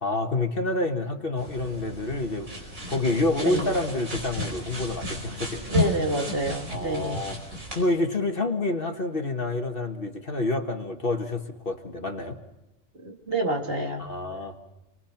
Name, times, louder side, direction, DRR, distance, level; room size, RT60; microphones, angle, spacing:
voice 1, 0.0-5.8 6.7-12.4 14.0-14.6, left 2 dB, 45° left, 5 dB, 1.8 m, -28 dB
sound 1, 1.4-7.8, left 1 dB, 85° right, 5.5 m, -33 dB
voice 2, 5.7-7.2 13.0-14.1, right 1 dB, 45° right, 2 dB, 2.4 m, -28 dB
30.0 x 21.5 x 5.9 m, 0.96 s
omnidirectional pair, 1.4 m